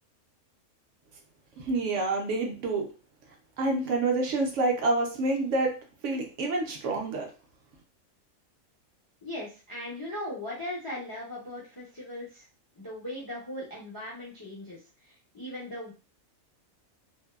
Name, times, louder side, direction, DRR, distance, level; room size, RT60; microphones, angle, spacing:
voice 1, 1.6-2.9 3.6-5.7 6.0-7.3, right 2 dB, 70° right, 2 dB, 0.8 m, -27 dB
voice 2, 9.2-12.5 12.8-15.9, left 1 dB, 35° left, -5 dB, 0.3 m, -39 dB
2.6 x 2.2 x 2.2 m, 0.34 s
omnidirectional pair, 1.4 m